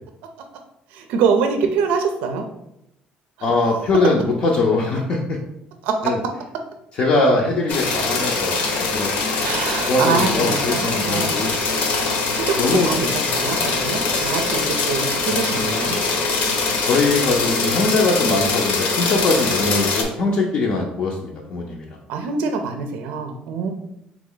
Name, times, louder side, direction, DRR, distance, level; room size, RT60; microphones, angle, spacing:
voice 1, 0.9-2.5 3.4-3.5 5.8-6.1 9.4-11.4 12.3-16.0 22.1-23.7, right 5 dB, 80° right, 5 dB, 0.5 m, -24 dB
voice 2, 3.4-5.4 6.0-6.2 7.0-8.6 8.9-9.1 9.9-11.5 12.6-12.9 15.3-16.1 16.8-22.0, left 3 dB, 40° left, -1 dB, 0.5 m, -21 dB
sound 1, 7.7-20.0, left 3 dB, 65° left, 0.8 m, -22 dB
3.8 x 3.0 x 3.8 m, 0.80 s
cardioid pair, 170°, 3 cm